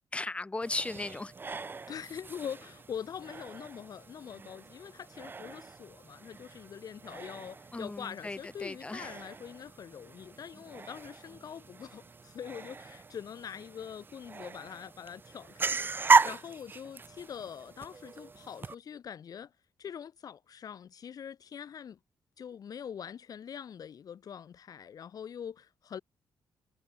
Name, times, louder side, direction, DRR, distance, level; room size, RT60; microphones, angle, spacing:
voice 1, 0.1-1.3 7.7-9.1, left 2 dB, 15° left, 2.1 m, -36 dB
sound 1, 0.6-18.7, right 4 dB, 30° right, 2.4 m, -35 dB
voice 2, 1.6-19.5 19.8-22.0 22.4-26.0, left 8 dB, 55° left, 7.9 m, -44 dB
cardioid pair, 130°, 7 cm